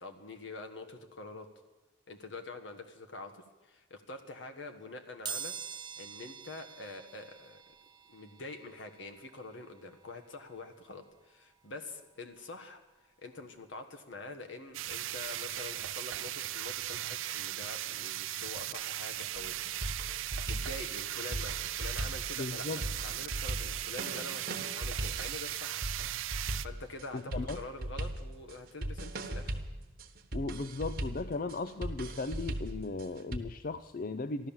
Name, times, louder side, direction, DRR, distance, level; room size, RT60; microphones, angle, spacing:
voice 1, 0.0-1.5 2.1-7.6 8.1-12.8 13.2-19.6 19.9-25.8 26.6-29.6, left 2 dB, 70° left, 5 dB, 1.5 m, -46 dB
sound 1, 5.2-15.9 16.4-16.5 17.6-17.7 18.0-20.1 20.5-23.1 23.4-23.6 23.9-24.0, right 7 dB, 25° right, 0.7 m, -48 dB
sound 2, 14.7-26.7, right 14 dB, 90° right, 0.5 m, -38 dB
sound 3, 19.4-33.4, right 1 dB, 50° right, 1.2 m, -39 dB
voice 2, 22.4-22.8 27.1-27.6 30.3-34.5, left 3 dB, 45° left, 12 dB, 0.4 m, -36 dB
14.5 x 12.0 x 7.2 m, 1.2 s
head